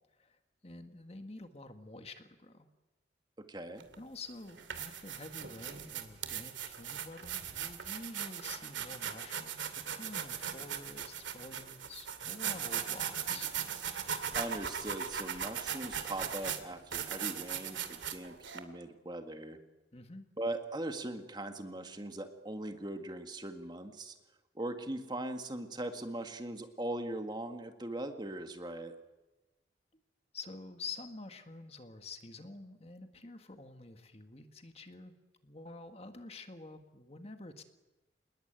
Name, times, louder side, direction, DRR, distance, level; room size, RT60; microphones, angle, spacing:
voice 1, 0.2-2.7 4.0-13.6 19.9-20.3 30.3-35.1 35.4-37.6, left 3 dB, 35° left, 7 dB, 1.8 m, -48 dB
voice 2, 3.5-3.9 14.3-19.6 20.4-24.1 24.6-29.0, right 1 dB, 25° right, 6 dB, 1.9 m, -40 dB
sound 1, 3.8-3.9 4.5-18.6, right 8 dB, 90° right, 2.6 m, -38 dB
27.5 x 21.0 x 9.1 m, 1.1 s
head